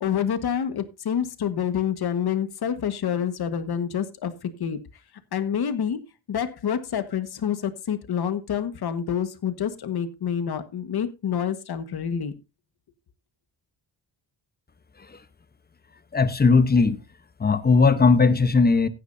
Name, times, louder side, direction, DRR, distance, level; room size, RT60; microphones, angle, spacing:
voice 1, 0.0-4.8 5.3-6.0 6.3-12.3, left 8 dB, 55° left, 1.5 m, -27 dB
voice 2, 16.1-17.0 17.4-18.9, left 4 dB, 20° left, 0.8 m, -18 dB
15.5 x 10.0 x 2.7 m
wide cardioid pair, 160°, 44 cm